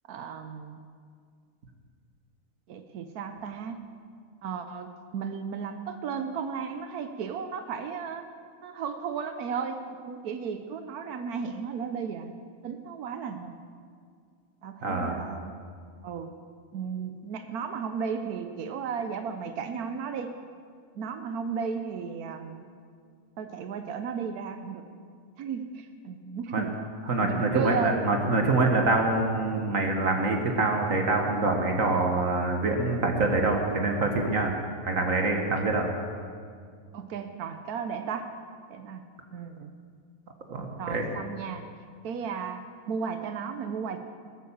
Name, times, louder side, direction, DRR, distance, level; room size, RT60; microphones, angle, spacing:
voice 1, 0.1-0.8 2.7-3.8 4.4-8.3 8.6-12.3 12.6-13.6 14.6-15.6 16.0-16.4 16.7-20.3 20.9-22.7 23.4-24.9 25.4-26.8 27.2-28.1 29.6-29.7 36.9-38.3 38.7-39.7 40.8-41.6 42.0-44.0, right 6 dB, 90° right, 7 dB, 1.3 m, -34 dB
voice 2, 14.8-15.2 26.5-26.7 27.1-34.5 34.9-35.9 40.5-41.1, right 2 dB, 60° right, 2 dB, 1.7 m, -25 dB
19.5 x 8.5 x 7.2 m, 2.1 s
omnidirectional pair, 1.5 m